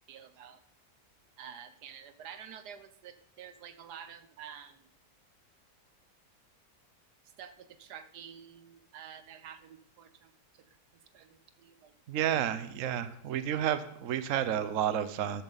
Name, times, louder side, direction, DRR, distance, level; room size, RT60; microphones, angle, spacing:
voice 1, 0.1-0.6 1.4-4.9 7.4-10.6 10.9-11.9 14.2-14.3, right 8 dB, 85° right, 10 dB, 1.4 m, -49 dB
voice 2, 12.1-15.4, right 10 dB, 60° right, 12 dB, 1.1 m, -31 dB
13.0 x 12.5 x 4.1 m, 0.71 s
omnidirectional pair, 1.7 m